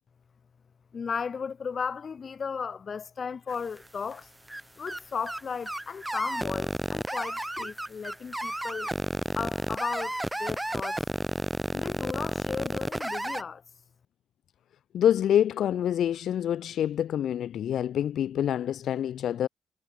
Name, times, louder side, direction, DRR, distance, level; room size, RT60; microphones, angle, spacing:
voice 1, 0.9-4.3 4.8-8.9 9.4-11.1 11.7-13.6, left 6 dB, 45° left, 1.0 m, -35 dB
sound 1, 3.5-4.1 4.5-4.6 4.9-5.0 5.3-5.4 5.7-13.4, right 1 dB, 10° right, 1.0 m, -31 dB
voice 2, 14.9-19.5, left 10 dB, 70° left, 0.3 m, -26 dB
cardioid pair, 90°, 0 cm